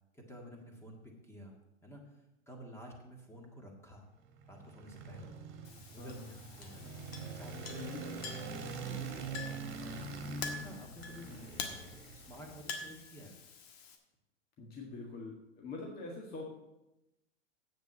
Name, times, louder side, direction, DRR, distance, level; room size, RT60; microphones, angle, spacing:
voice 1, 0.1-1.5 1.8-2.2 2.5-4.1 4.5-5.3 5.9-7.9 8.7-10.0 10.6-13.4, equal, 5° left, 1 dB, 1.8 m, -51 dB
sound 1, 4.2-12.6, right 4 dB, 35° right, 1.9 m, -44 dB
Chink clink, 5.6-14.0, left 5 dB, 55° left, 1.6 m, -47 dB
voice 2, 6.0-6.3 7.7-8.3 14.6-16.5, left 3 dB, 25° left, -1 dB, 1.7 m, -45 dB
7.9 x 7.1 x 7.4 m, 0.93 s
hypercardioid pair, 130°, 36 cm